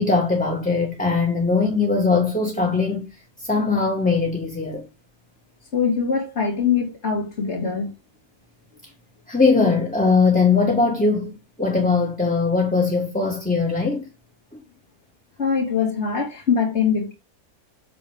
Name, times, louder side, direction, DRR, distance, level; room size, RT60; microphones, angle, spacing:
voice 1, 0.0-3.1 3.4-4.9 9.3-11.3 11.6-14.1, left 4 dB, 5° left, 1.6 m, -20 dB
voice 2, 5.7-7.9 15.4-17.1, left 6 dB, 50° left, 2.7 m, -22 dB
8.1 x 6.4 x 3.6 m
omnidirectional pair, 1.5 m